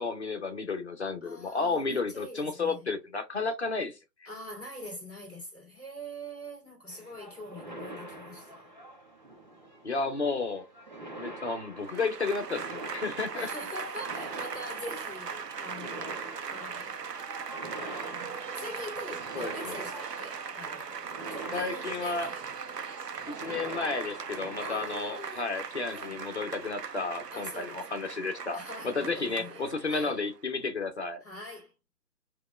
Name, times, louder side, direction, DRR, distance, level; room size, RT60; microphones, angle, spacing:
voice 1, 0.0-4.0 9.8-10.7 11.2-13.5 19.4-19.9 21.5-22.3 23.3-31.2, left 4 dB, 40° left, 0.8 m, -32 dB
voice 2, 1.2-2.9 4.2-8.7 13.3-17.0 18.5-22.5 24.6-25.5 25.9-26.2 27.3-28.2 28.5-30.2 31.2-31.7, equal, 5° left, 2.1 m, -43 dB
sound 1, 6.9-25.2, right 1 dB, 30° right, 0.8 m, -45 dB
Applause / Crowd, 11.8-30.3, right 6 dB, 70° right, 0.6 m, -39 dB
4.8 x 2.4 x 3.0 m
figure-of-eight pair, 150°, 50 cm